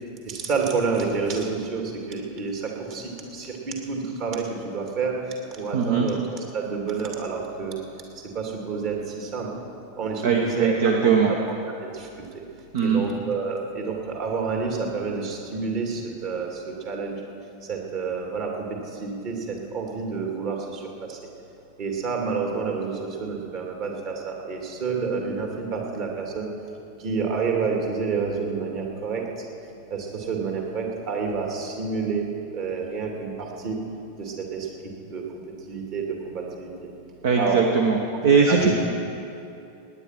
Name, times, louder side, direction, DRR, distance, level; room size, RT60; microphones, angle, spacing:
voice 1, 0.3-5.1 5.6-7.7 8.3-9.5 10.0-10.7 11.0-11.1 11.7-12.3 12.8-17.2 17.7-18.7 18.9-20.8 21.1-21.2 21.8-26.5 27.0-29.2 29.9-33.8 34.2-34.7 35.1-36.9 37.4-37.6 38.4-38.7, right 5 dB, 40° right, 1 dB, 2.5 m, -29 dB
voice 2, 5.7-6.1 10.2-11.3 12.7-13.0 37.2-38.0 38.2-38.7, right 5 dB, 55° right, 3 dB, 1.0 m, -20 dB
18.0 x 9.8 x 5.8 m, 2.7 s
figure-of-eight pair, 90°, 0 cm